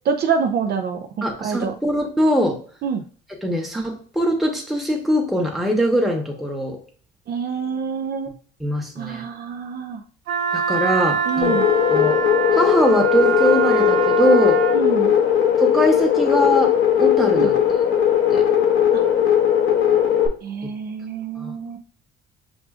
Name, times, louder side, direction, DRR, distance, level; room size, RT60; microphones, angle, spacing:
voice 1, 0.1-1.0 1.4-1.7 2.8-3.0 7.3-8.3 9.0-10.0 11.3-11.7 14.7-15.1 17.4-17.5 18.9-19.0 20.4-21.8, right 6 dB, 50° right, 5 dB, 0.5 m, -26 dB
voice 2, 1.2-2.6 3.4-6.8 8.6-9.2 10.5-11.6 11.9-12.2 12.5-14.6 15.6-17.5 18.3-18.4 21.4-21.5, equal, ahead, 0 dB, 0.9 m, -21 dB
Wind instrument woodwind instrument, 10.3-14.8, right 8 dB, 90° right, 1.1 m, -24 dB
sound 1, 11.4-20.3, left 9 dB, 80° left, 0.7 m, -18 dB
6.0 x 2.5 x 2.4 m, 0.42 s
cardioid pair, 110°, 21 cm